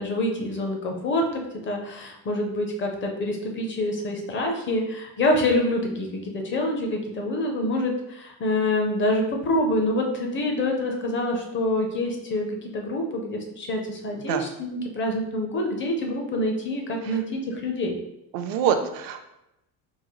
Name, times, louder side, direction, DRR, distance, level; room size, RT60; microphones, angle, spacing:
voice 1, 0.0-18.0, left 1 dB, 30° left, 2 dB, 0.6 m, -26 dB
voice 2, 18.3-19.2, right 8 dB, 70° right, 7 dB, 0.5 m, -25 dB
3.8 x 2.3 x 3.0 m, 0.86 s
cardioid pair, 145°, 37 cm